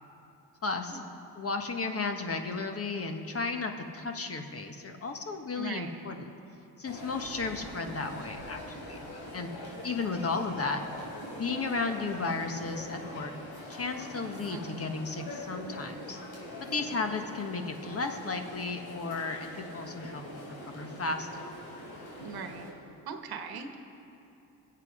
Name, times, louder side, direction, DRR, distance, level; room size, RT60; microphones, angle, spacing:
voice 1, 0.6-1.0 1.3-6.3 6.8-9.1 9.3-9.5 9.8-10.8 11.3-13.3 13.7-16.2 16.7-21.3, left 4 dB, 35° left, 5 dB, 1.4 m, -34 dB
voice 2, 5.6-6.0 14.5-14.8 22.2-22.7 23.1-23.8, right 5 dB, 70° right, 6 dB, 1.3 m, -40 dB
sound 1, 6.8-22.7, left 1 dB, 85° left, 3.6 m, -43 dB
23.5 x 8.0 x 5.0 m, 2.9 s
cardioid pair, 90°, 38 cm